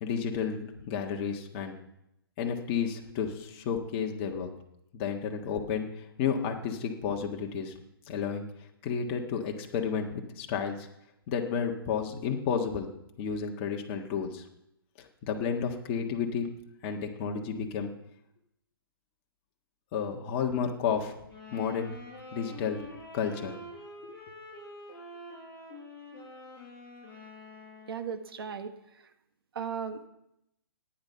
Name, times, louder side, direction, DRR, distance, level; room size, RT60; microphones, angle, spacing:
voice 1, 0.0-1.7 2.4-4.5 4.9-7.7 8.1-8.5 8.8-10.9 11.3-12.9 13.2-14.4 15.0-16.5 16.8-17.9 19.9-21.1 21.5-22.0 22.3-22.8 23.1-23.6 24.0-24.2, left 7 dB, 30° left, 2 dB, 1.6 m, -31 dB
sound 1, 21.2-28.3, left 1 dB, 10° left, 6.8 m, -47 dB
voice 2, 27.9-29.1 29.5-30.0, right 6 dB, 70° right, 8 dB, 1.3 m, -37 dB
13.5 x 10.5 x 5.7 m, 0.82 s
hypercardioid pair, 155°, 13 cm